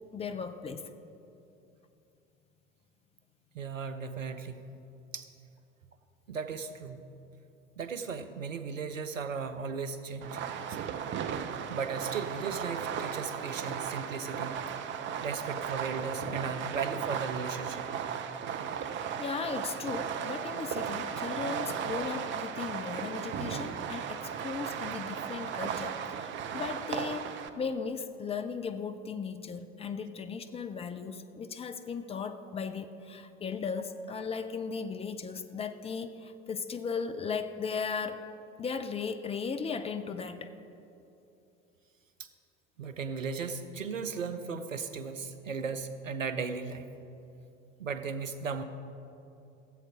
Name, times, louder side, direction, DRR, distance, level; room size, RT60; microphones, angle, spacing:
voice 1, 0.1-0.9 19.2-38.2 38.6-40.5, left 5 dB, 15° left, 8 dB, 0.5 m, -37 dB
voice 2, 3.5-4.7 5.1-5.3 6.3-7.0 7.8-10.8 11.7-14.8 15.2-17.9 42.2-42.3 42.8-46.9 47.8-48.6, right 5 dB, 80° right, 10 dB, 0.8 m, -36 dB
Fireworks, 10.2-27.5, right 7 dB, 30° right, 0.6 m, -36 dB
15.5 x 7.7 x 4.9 m, 2.8 s
figure-of-eight pair, 70°, 38 cm